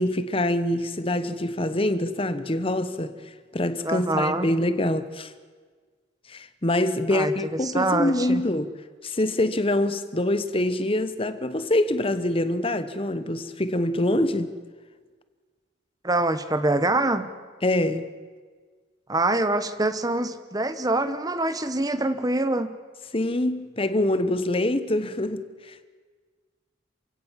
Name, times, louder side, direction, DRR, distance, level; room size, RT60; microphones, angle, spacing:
voice 1, 0.0-3.1 3.5-5.3 6.3-8.7 9.0-14.5 17.6-18.1 23.1-25.9, left 1 dB, 30° left, 1.0 m, -25 dB
voice 2, 3.8-4.5 7.1-7.3 7.6-8.4 16.0-17.3 19.1-22.8, right 2 dB, 20° right, 1.0 m, -25 dB
27.5 x 16.5 x 7.4 m
head